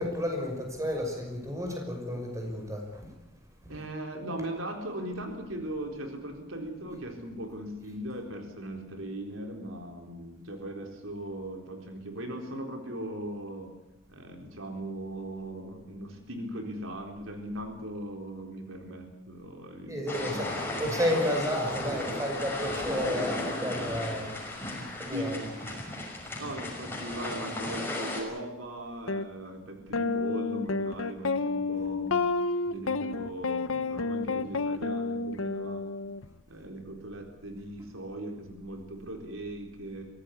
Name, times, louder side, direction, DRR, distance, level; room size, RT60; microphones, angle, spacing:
voice 1, 0.0-3.1 3.6-3.8 19.9-24.4 24.6-25.5, equal, 15° right, 3 dB, 5.9 m, -32 dB
voice 2, 3.7-13.7 14.1-20.8 22.9-23.2 25.1-25.9 26.4-32.2 32.7-35.9 36.5-40.0, right 1 dB, 80° right, 3 dB, 4.1 m, -39 dB
sound 1, 20.1-28.2, left 2 dB, 10° left, 6.2 m, -35 dB
sound 2, 29.1-29.2 29.9-36.3, left 3 dB, 85° left, 0.9 m, -30 dB
23.5 x 17.0 x 8.5 m, 0.94 s
head